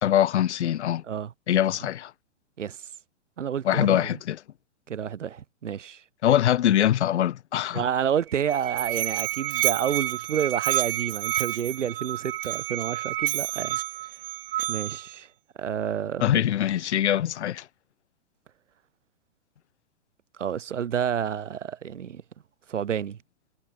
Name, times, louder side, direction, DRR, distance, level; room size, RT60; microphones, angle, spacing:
voice 1, 0.0-1.0 1.5-2.1 3.6-4.4 6.2-7.8 16.2-17.7, left 11 dB, 65° left, 1.4 m, -23 dB
voice 2, 2.6-2.9 3.4-4.2 4.9-6.0 7.7-13.8 14.7-15.3 15.6-16.2 20.4-22.2 22.7-23.2, right 8 dB, 80° right, 4.2 m, -29 dB
Musical instrument, 8.2-15.2, right 15 dB, 50° right, 1.5 m, -29 dB
hypercardioid pair, 150°, 36 cm